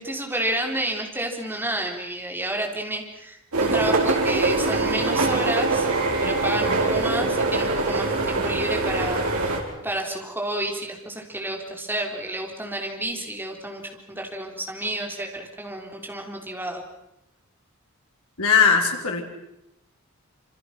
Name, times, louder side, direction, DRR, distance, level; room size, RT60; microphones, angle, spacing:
voice 1, 0.0-5.9 6.2-16.8, right 1 dB, 10° right, 2 dB, 3.7 m, -30 dB
sound 1, 3.5-9.6, right 2 dB, 85° right, 4.6 m, -23 dB
voice 2, 18.4-19.2, left 6 dB, 85° left, 2 dB, 4.6 m, -19 dB
27.0 x 26.5 x 6.0 m, 0.85 s
head